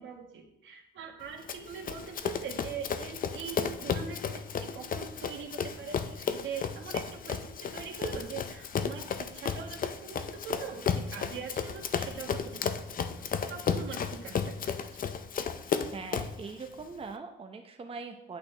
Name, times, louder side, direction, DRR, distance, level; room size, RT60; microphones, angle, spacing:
voice 1, 0.0-13.2 13.5-15.0, right 6 dB, 75° right, 2 dB, 1.5 m, -42 dB
Run, 1.5-16.4, left 6 dB, 45° left, 0.6 m, -33 dB
voice 2, 15.9-18.4, right 4 dB, 30° right, 4 dB, 0.7 m, -41 dB
8.5 x 5.9 x 3.3 m, 0.84 s
cardioid pair, 90°, 20 cm